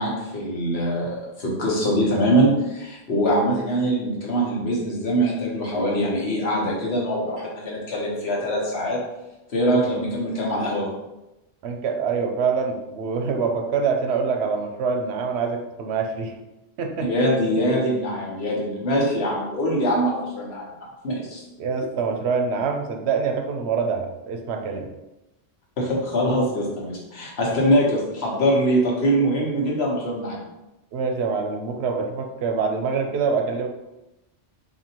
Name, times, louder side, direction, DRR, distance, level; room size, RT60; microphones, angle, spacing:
voice 1, 0.0-9.0 9.5-10.9 17.0-20.7 21.0-21.4 25.8-30.4, equal, 75° left, -3 dB, 1.3 m, -23 dB
voice 2, 9.6-10.0 11.6-16.3 16.8-17.1 21.6-24.9 27.5-27.6 30.9-33.7, right 5 dB, 85° right, 4 dB, 0.9 m, -25 dB
4.3 x 2.8 x 2.8 m, 0.95 s
omnidirectional pair, 1.1 m